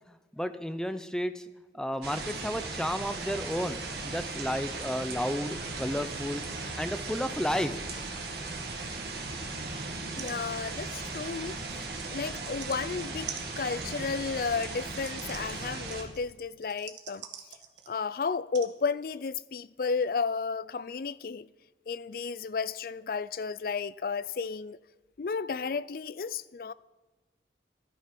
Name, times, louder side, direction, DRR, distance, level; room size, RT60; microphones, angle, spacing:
voice 1, 0.1-1.5 1.7-6.4 6.8-7.8, equal, 5° left, 0.5 m, -32 dB
sound 1, 2.0-16.0, right 3 dB, 65° right, 1.9 m, -37 dB
sound 2, 9.9-10.0 10.2-10.4 10.6-12.8 13.3-18.0 18.5-18.7 19.5-19.6, right 9 dB, 80° right, 1.3 m, -46 dB
voice 2, 10.2-13.3 13.6-17.3 17.9-21.5 21.9-24.8 25.2-26.7, left 5 dB, 55° left, 0.4 m, -33 dB
13.0 x 11.0 x 6.0 m
head